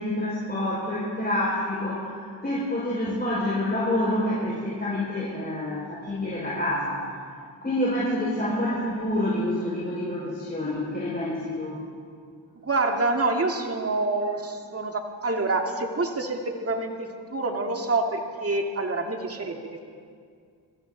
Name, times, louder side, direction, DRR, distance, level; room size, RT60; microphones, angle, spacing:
voice 1, 0.0-7.1 7.6-11.8, left 1 dB, 20° left, -7 dB, 5.1 m, -27 dB
voice 2, 12.6-19.6, right 2 dB, 30° right, 3 dB, 2.0 m, -27 dB
24.5 x 14.0 x 3.9 m, 2.2 s
cardioid pair, 55°, 45 cm